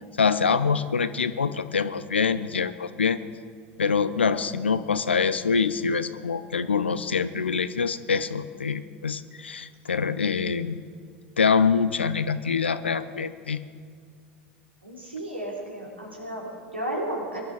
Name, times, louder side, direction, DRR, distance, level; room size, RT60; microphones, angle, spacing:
voice 1, 0.2-3.2 3.8-10.8 11.4-13.6, left 5 dB, 75° left, 14 dB, 0.6 m, -25 dB
voice 2, 14.8-17.4, right 1 dB, 85° right, -3 dB, 3.4 m, -33 dB
21.5 x 11.5 x 4.8 m, 2.1 s
figure-of-eight pair, 80°, 6 cm